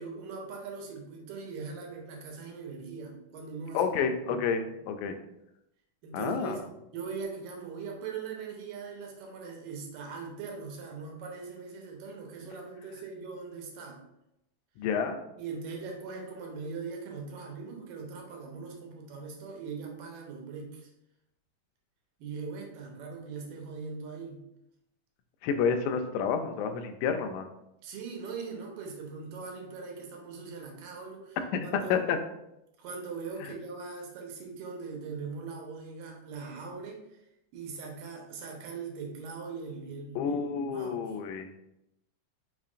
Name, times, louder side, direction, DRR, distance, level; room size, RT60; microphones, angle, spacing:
voice 1, 0.0-3.9 4.3-4.4 6.0-6.6 6.9-14.0 15.4-20.9 22.2-24.4 27.8-31.4 31.6-32.0 32.8-37.2 37.5-41.1, right 5 dB, 85° right, 0 dB, 2.4 m, -41 dB
voice 2, 3.7-5.2 6.1-6.6 14.8-15.2 25.4-27.5 31.5-32.2 33.4-33.5 40.2-41.5, left 6 dB, 80° left, 6 dB, 1.8 m, -29 dB
5.5 x 3.7 x 2.4 m, 0.85 s
omnidirectional pair, 3.8 m